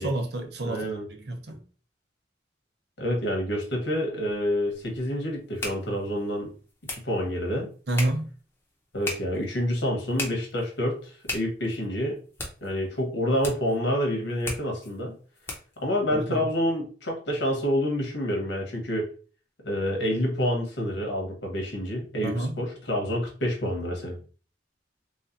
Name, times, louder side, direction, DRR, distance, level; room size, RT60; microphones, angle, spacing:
voice 1, 0.0-1.6 7.9-8.3 16.1-16.5 22.2-22.6, right 1 dB, 65° right, 0.8 m, -29 dB
voice 2, 0.6-1.1 3.0-6.5 6.9-7.7 8.9-12.2 12.6-15.1 15.8-19.1 19.6-24.2, equal, 85° left, 1.4 m, -28 dB
sound 1, 4.2-15.8, left 2 dB, 15° left, 0.8 m, -40 dB
3.5 x 3.2 x 2.7 m
head